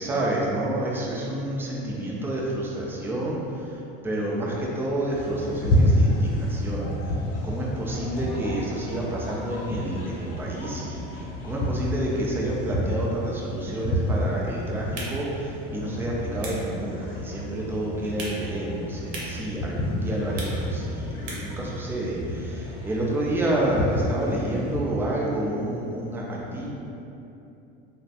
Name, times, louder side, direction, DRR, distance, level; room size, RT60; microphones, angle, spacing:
voice 1, 0.0-3.8 4.0-6.9 7.4-26.8, right 1 dB, 10° right, -4 dB, 0.3 m, -29 dB
sound 1, 5.1-24.8, left 1 dB, 55° left, 0.7 m, -29 dB
sound 2, 14.8-21.7, right 2 dB, 70° right, 0.8 m, -42 dB
3.1 x 2.0 x 2.8 m, 2.8 s
supercardioid pair, 110°, 29 cm